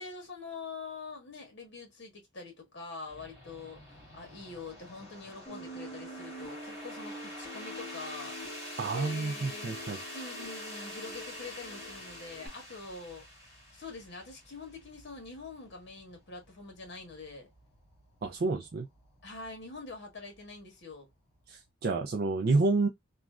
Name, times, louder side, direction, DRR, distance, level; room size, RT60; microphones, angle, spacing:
voice 1, 0.0-3.8 4.1-8.4 8.8-9.8 10.1-17.5 19.2-21.1, left 4 dB, 65° left, 1.5 m, -45 dB
sound 1, 3.1-21.7, left 1 dB, 30° left, 1.9 m, -47 dB
sound 2, 5.5-12.5, right 1 dB, 15° left, 1.8 m, -46 dB
voice 2, 8.8-10.0 18.2-18.9 21.5-22.9, right 3 dB, 55° right, 0.4 m, -29 dB
3.1 x 2.4 x 2.3 m
head